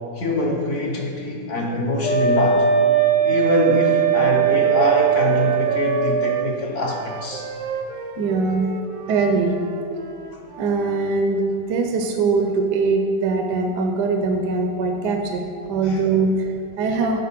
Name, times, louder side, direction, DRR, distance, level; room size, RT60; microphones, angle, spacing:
voice 1, 0.1-2.7 3.2-7.5 15.8-16.0, left 1 dB, 55° left, 0 dB, 0.9 m, -23 dB
Wind instrument woodwind instrument, 2.0-6.3, right 8 dB, 75° left, 1.8 m, -19 dB
Wind instrument woodwind instrument 2, 2.7-6.5 6.8-11.1, right 5 dB, 90° right, 0.6 m, -34 dB
voice 2, 8.2-8.7 9.1-9.6 10.6-17.2, right 4 dB, 75° right, 4 dB, 1.2 m, -22 dB
9.4 x 4.0 x 5.8 m, 2.7 s
omnidirectional pair, 1.9 m